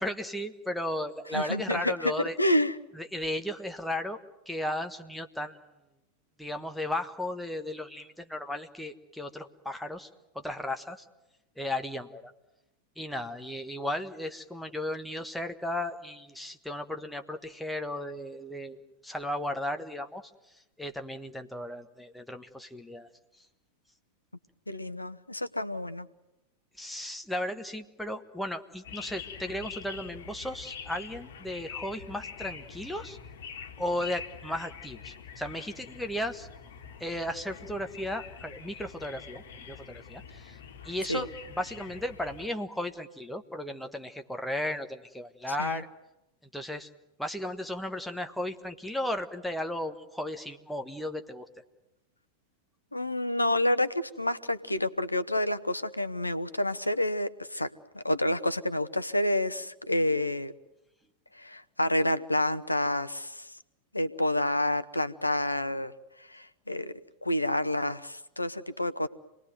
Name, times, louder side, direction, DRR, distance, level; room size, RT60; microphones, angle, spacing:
voice 1, 0.0-2.4 2.9-4.2 4.5-5.6 6.4-10.1 10.3-11.0 11.6-12.3 13.0-18.8 19.0-20.2 20.8-23.1 26.8-33.2 33.8-36.5 37.0-40.6 40.8-45.9 46.5-46.9 47.2-51.5, left 1 dB, ahead, 5 dB, 1.4 m, -35 dB
voice 2, 1.3-2.7 24.7-26.1 41.1-41.2 45.6-45.8 52.9-57.7 57.9-60.5 61.4-63.5 63.9-65.9 66.2-69.1, left 1 dB, 85° left, 12 dB, 1.0 m, -29 dB
sound 1, 28.8-42.5, left 6 dB, 60° left, 1.9 m, -45 dB
27.0 x 19.5 x 9.3 m, 0.93 s
figure-of-eight pair, 90°, 0 cm